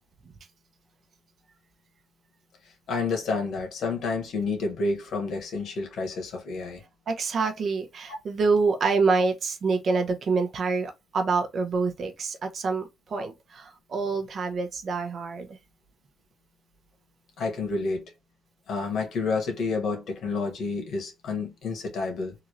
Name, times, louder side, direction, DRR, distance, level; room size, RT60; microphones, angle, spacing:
voice 1, 2.9-6.8 17.4-18.0 18.7-22.3, left 4 dB, 65° left, 1.6 m, -29 dB
voice 2, 7.1-12.8 13.1-15.5, right 4 dB, 55° right, 0.9 m, -26 dB
3.8 x 2.8 x 3.1 m
cardioid pair, 90°, 0 cm